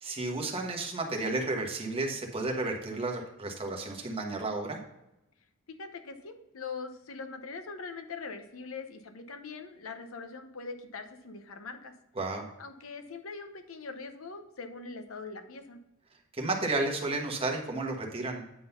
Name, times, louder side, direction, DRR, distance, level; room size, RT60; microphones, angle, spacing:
voice 1, 0.0-4.8 12.2-12.4 16.3-18.4, right 2 dB, 25° right, 1 dB, 1.3 m, -32 dB
voice 2, 5.8-11.9 12.6-15.8, left 4 dB, 80° left, 7 dB, 0.9 m, -42 dB
9.4 x 3.9 x 5.5 m, 0.89 s
head